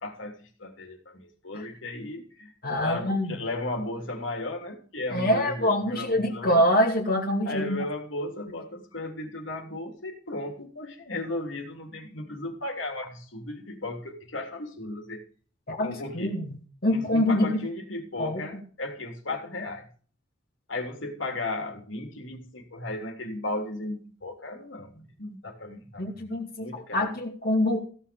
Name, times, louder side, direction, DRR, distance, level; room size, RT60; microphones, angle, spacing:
voice 1, 0.0-2.5 2.8-6.6 7.4-15.2 15.8-16.4 16.9-19.9 20.7-26.1 26.6-27.1, left 2 dB, 75° left, 3.2 m, -35 dB
voice 2, 2.6-3.4 5.1-7.8 15.7-16.5 16.8-17.5 18.2-18.4 26.0-27.8, left 1 dB, 50° left, 2.5 m, -25 dB
16.5 x 7.4 x 5.3 m
head